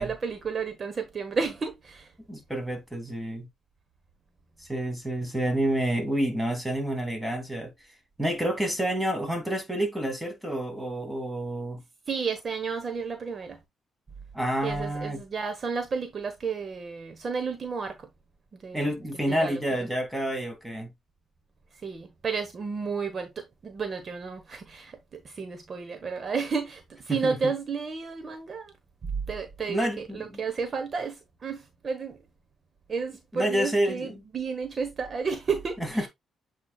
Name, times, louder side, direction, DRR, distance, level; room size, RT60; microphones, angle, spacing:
voice 1, 0.0-2.1 12.1-13.6 14.6-18.1 18.5-19.6 21.7-28.7 29.0-32.2 32.9-36.1, right 5 dB, 45° right, 1.2 m, -32 dB
voice 2, 2.3-3.5 4.7-7.7 8.2-11.8 14.3-15.2 18.7-20.9 27.2-27.5 29.7-30.3 33.3-34.2 36.0-36.1, right 1 dB, 5° right, 2.7 m, -29 dB
8.2 x 4.8 x 2.4 m
cardioid pair, 90°, 0 cm